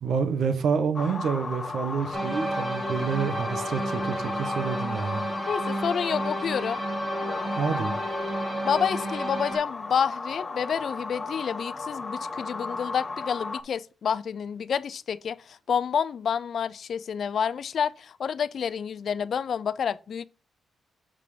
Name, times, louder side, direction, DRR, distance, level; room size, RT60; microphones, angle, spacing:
voice 1, 0.0-5.2 7.6-7.9, right 6 dB, 75° right, 1.0 m, -28 dB
sound 1, 0.9-13.6, left 3 dB, 35° left, 0.7 m, -35 dB
sound 2, 2.1-9.6, right 1 dB, 15° right, 3.7 m, -32 dB
voice 2, 5.5-6.8 8.6-20.2, left 7 dB, 65° left, 0.4 m, -29 dB
7.0 x 3.7 x 4.9 m
cardioid pair, 70°, 0 cm